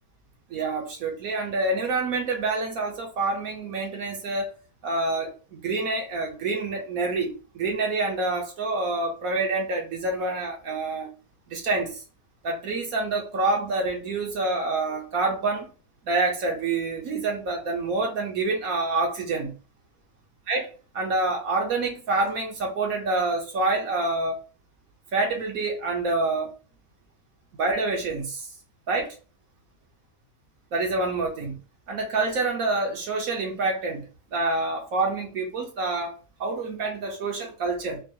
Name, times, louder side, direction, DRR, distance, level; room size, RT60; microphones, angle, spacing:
voice 1, 0.5-4.5 4.8-11.1 11.5-12.0 12.4-15.7 16.1-19.5 20.5-24.4 25.1-26.5 27.6-28.5 28.9-29.2 30.7-31.6 31.9-34.1 34.3-38.0, right 3 dB, 65° right, 1.2 m, -27 dB
4.6 x 2.4 x 2.7 m
omnidirectional pair, 1.7 m